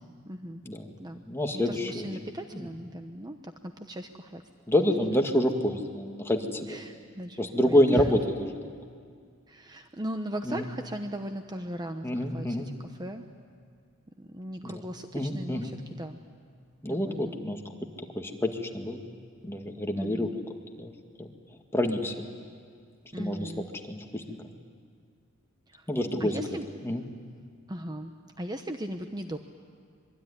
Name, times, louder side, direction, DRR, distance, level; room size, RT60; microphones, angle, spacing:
voice 1, 0.2-0.6 1.0-1.2 1.5-4.4 6.7-8.2 9.5-13.3 14.2-16.2 16.9-17.4 19.9-20.3 23.1-23.7 25.7-25.9 26.2-26.7 27.7-29.4, right 1 dB, 20° right, 6 dB, 0.9 m, -38 dB
voice 2, 1.3-2.1 2.5-2.7 4.7-6.8 7.4-8.1 10.5-10.6 12.0-12.7 14.6-14.7 15.1-15.7 16.8-17.6 18.2-19.0 19.4-20.3 20.8-20.9 21.2-21.3 21.7-22.3 23.2-23.5 23.9-24.4 25.9-26.4 26.8-27.0, left 1 dB, 10° left, 3 dB, 2.0 m, -27 dB
26.0 x 22.5 x 9.9 m, 2.1 s
head